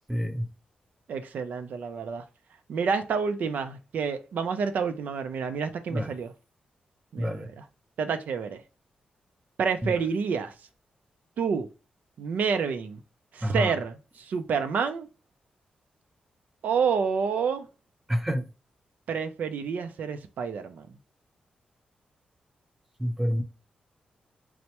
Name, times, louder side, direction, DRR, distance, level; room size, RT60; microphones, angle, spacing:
voice 1, 0.1-0.5 5.9-6.1 7.2-7.5 9.8-9.9 13.4-13.7 18.1-18.4 23.0-23.4, equal, 5° right, 0.5 m, -27 dB
voice 2, 1.1-2.2 2.7-6.3 7.1-7.7 8.0-8.6 9.6-10.5 11.4-11.7 12.2-13.0 13.3-15.1 16.6-17.7 19.1-20.9, right 6 dB, 70° right, 0.4 m, -29 dB
4.4 x 2.1 x 2.8 m
wide cardioid pair, 125°, 3 cm